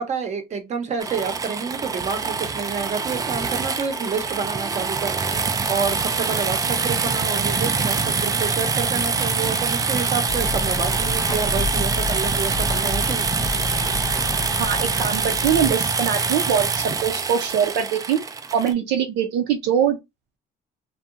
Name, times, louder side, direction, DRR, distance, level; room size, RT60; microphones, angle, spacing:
voice 1, 0.0-5.2 5.7-13.3, right 5 dB, 40° right, 0.7 m, -28 dB
sound 1, 1.0-18.7, right 4 dB, 20° right, 0.3 m, -24 dB
sound 2, 10.3-15.7, left 3 dB, 25° left, 0.6 m, -30 dB
voice 2, 14.6-16.7 17.0-18.2 18.5-20.0, right 8 dB, 85° right, 0.6 m, -22 dB
2.7 x 2.2 x 2.5 m
cardioid pair, 110°, 17 cm